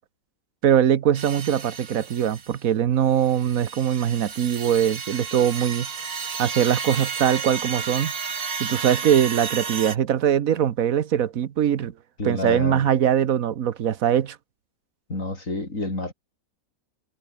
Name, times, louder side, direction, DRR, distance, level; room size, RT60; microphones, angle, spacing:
voice 1, 0.6-5.9 6.4-8.1 8.6-11.9 12.2-14.4, right 9 dB, 65° right, 1.4 m, -22 dB
sound 1, 1.1-2.6 3.1-10.0, right 6 dB, 85° right, 2.5 m, -32 dB
voice 2, 12.2-12.9 15.1-16.1, left 2 dB, 60° left, 6.2 m, -29 dB
omnidirectional pair, 1.6 m